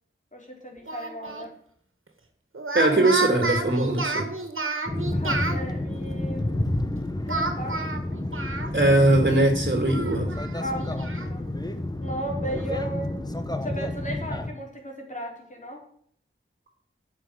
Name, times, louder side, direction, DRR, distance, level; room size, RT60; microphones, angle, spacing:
voice 1, 0.3-1.5 5.1-6.7 7.2-7.8 10.6-11.4 12.0-13.2 13.6-15.8, right 1 dB, 35° left, 1 dB, 3.6 m, -35 dB
Speech, 0.9-1.5 2.5-5.6 7.3-9.0 9.3-9.4 9.9-11.3, right 3 dB, 80° right, 1.9 m, -30 dB
voice 2, 2.7-4.3 8.7-10.4, right 2 dB, 50° right, 3 dB, 2.5 m, -21 dB
sound 1, 4.9-14.5, left 1 dB, 20° left, 1.1 m, -30 dB
9.0 x 6.4 x 8.2 m, 0.62 s
wide cardioid pair, 55°, 21 cm